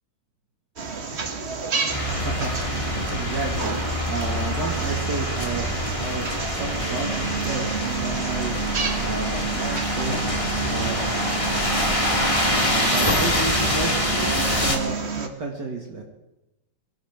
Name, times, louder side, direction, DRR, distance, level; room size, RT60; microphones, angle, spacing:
sound 1, 0.8-15.3, right 5 dB, 35° right, 1.4 m, -30 dB
sound 2, 1.9-14.8, left 1 dB, 15° left, 2.1 m, -25 dB
voice 1, 2.0-3.8 4.1-5.7 6.0-8.6 9.0-10.2 10.7-11.1 12.6-16.0, right 3 dB, 55° right, 0 dB, 2.7 m, -32 dB
23.0 x 17.0 x 3.6 m, 0.89 s
omnidirectional pair, 2.3 m